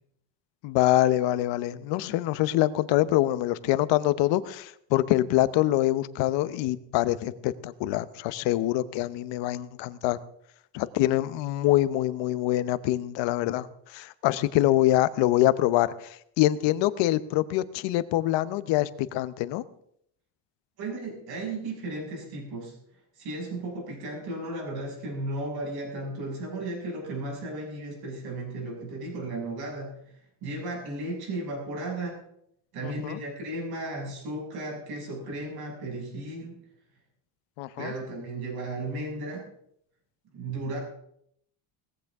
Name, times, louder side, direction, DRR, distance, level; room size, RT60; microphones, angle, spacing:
voice 1, 0.6-10.2 10.7-13.7 13.9-19.6 32.8-33.2 37.6-37.9, left 15 dB, 75° left, 15 dB, 0.9 m, -25 dB
voice 2, 20.8-22.8 23.2-32.2 32.7-36.6 37.8-39.5 40.3-40.8, right 2 dB, 55° right, -1 dB, 6.5 m, -35 dB
19.0 x 14.5 x 3.6 m, 0.71 s
cardioid pair, 165°, 44 cm